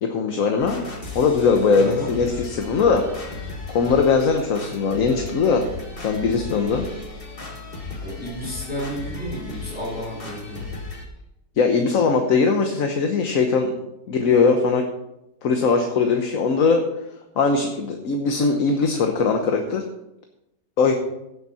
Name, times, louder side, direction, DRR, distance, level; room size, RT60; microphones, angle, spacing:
voice 1, 0.0-0.8 1.1-3.3 3.7-5.7 6.0-6.8 11.6-13.7 14.1-14.8 15.4-16.8 17.4-19.9 20.8-20.9, left 4 dB, 65° left, 4 dB, 1.4 m, -20 dB
sound 1, 0.6-11.1, left 3 dB, 40° left, 2.0 m, -35 dB
voice 2, 1.7-2.1 8.0-10.7 14.0-14.1, equal, 5° right, -3 dB, 3.4 m, -32 dB
16.5 x 7.3 x 4.3 m, 0.88 s
omnidirectional pair, 1.6 m